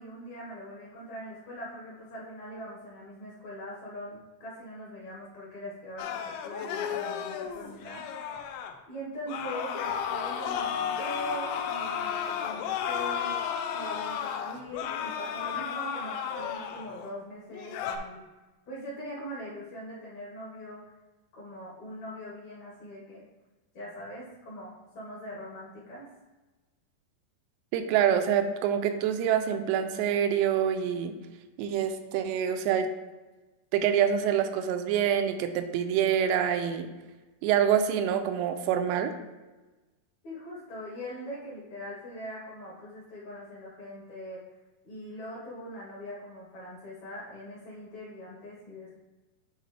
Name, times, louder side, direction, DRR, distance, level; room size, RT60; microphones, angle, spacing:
voice 1, 0.0-13.3 13.7-18.2 18.7-20.9 21.3-23.2 23.7-26.1 40.2-44.4 44.8-48.9, equal, 60° left, -7 dB, 2.0 m, -42 dB
sound 1, 6.0-8.7 9.3-17.1 17.5-18.0, left 8 dB, 85° left, 2.8 m, -33 dB
voice 2, 27.7-31.2 31.6-32.9 33.7-36.9 37.4-39.1, right 9 dB, 90° right, 7 dB, 2.8 m, -26 dB
10.5 x 3.9 x 3.2 m, 1.2 s
omnidirectional pair, 4.9 m